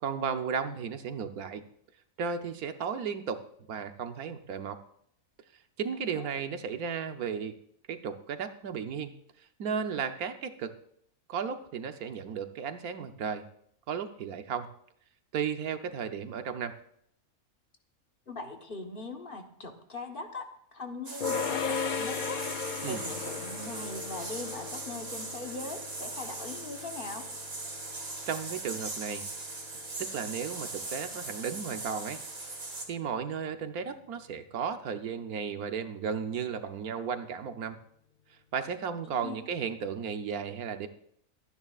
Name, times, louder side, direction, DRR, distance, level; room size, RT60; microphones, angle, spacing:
voice 1, 0.0-1.6 2.2-3.4 3.7-4.8 5.8-7.5 7.9-9.1 9.6-10.7 11.3-13.5 13.9-14.7 15.3-16.7 22.8-23.1 28.3-29.3 30.0-32.2 32.9-37.8 38.5-40.9, right 6 dB, 75° right, 8 dB, 1.4 m, -34 dB
voice 2, 5.9-6.4 18.3-22.4 22.8-27.2 39.0-39.5, left 3 dB, 40° left, 4 dB, 1.3 m, -41 dB
sound 1, 21.0-32.8, right 3 dB, 40° right, 2.0 m, -40 dB
sound 2, 21.2-32.5, left 6 dB, 70° left, 0.4 m, -38 dB
23.0 x 9.9 x 2.4 m, 0.68 s
omnidirectional pair, 1.6 m